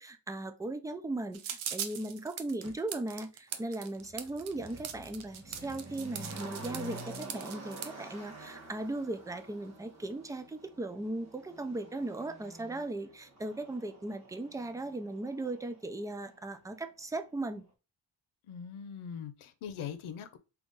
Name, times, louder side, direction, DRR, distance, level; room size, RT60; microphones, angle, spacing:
voice 1, 0.0-17.6, right 2 dB, 10° right, 0.3 m, -38 dB
sound 1, 1.3-7.9, right 9 dB, 75° right, 0.8 m, -40 dB
Motor vehicle (road), 2.6-2.7 3.5-16.4 16.7-16.8, right 2 dB, 35° right, 1.1 m, -49 dB
voice 2, 18.4-20.4, left 7 dB, 90° left, 0.8 m, -41 dB
3.9 x 2.9 x 3.6 m
wide cardioid pair, 125°, 48 cm